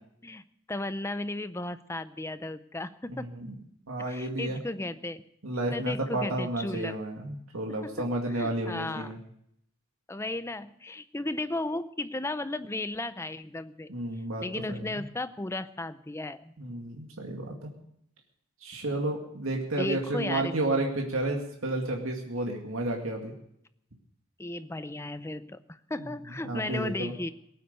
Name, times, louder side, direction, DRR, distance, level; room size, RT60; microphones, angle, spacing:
voice 1, 0.7-3.3 4.0-5.2 5.7-7.0 7.8-9.1 10.1-13.9 14.4-16.5 18.9-19.0 19.8-20.5 24.4-27.3, left 2 dB, 15° left, 13 dB, 0.5 m, -35 dB
voice 2, 3.1-3.5 3.9-4.6 5.4-9.2 13.9-15.0 16.6-17.7 18.6-23.3 26.4-27.1, right 1 dB, 85° right, 1 dB, 2.2 m, -31 dB
18.0 x 9.3 x 6.7 m, 0.73 s
head